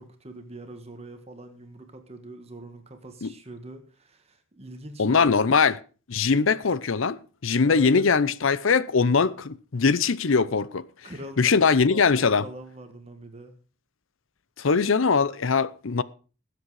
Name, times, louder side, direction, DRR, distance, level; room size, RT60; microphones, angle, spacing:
voice 1, 0.0-5.5 6.3-6.4 7.6-8.1 11.0-13.6, right 1 dB, 30° right, 1.6 m, -43 dB
voice 2, 5.0-5.8 6.1-10.8 11.4-12.4 14.6-16.0, left 5 dB, 75° left, 0.7 m, -21 dB
19.0 x 8.0 x 4.8 m
head